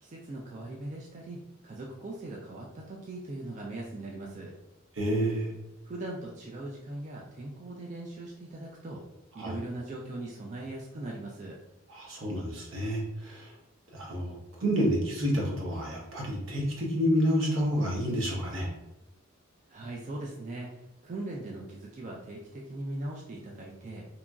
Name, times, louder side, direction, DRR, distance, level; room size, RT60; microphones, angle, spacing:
voice 1, 0.0-4.5 5.8-9.0 9.3-11.6 19.7-20.7 21.0-24.1, right 2 dB, 35° right, -2 dB, 0.3 m, -40 dB
voice 2, 4.9-5.5 9.4-9.5 11.9-13.5 13.9-18.7, equal, 75° right, -2 dB, 0.9 m, -29 dB
2.8 x 2.5 x 2.3 m, 0.95 s
head